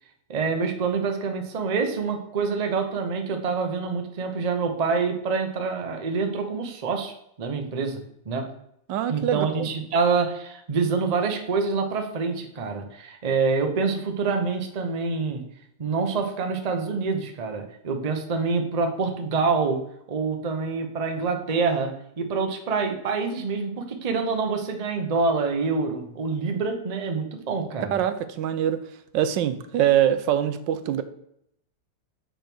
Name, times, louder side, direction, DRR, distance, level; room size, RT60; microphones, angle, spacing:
voice 1, 0.3-8.5 9.1-15.5 15.8-28.0, right 4 dB, 55° right, 5 dB, 0.4 m, -26 dB
voice 2, 8.9-9.7 27.9-28.8 29.1-31.0, right 10 dB, 85° right, 11 dB, 1.3 m, -23 dB
6.3 x 3.4 x 6.0 m, 0.73 s
omnidirectional pair, 2.0 m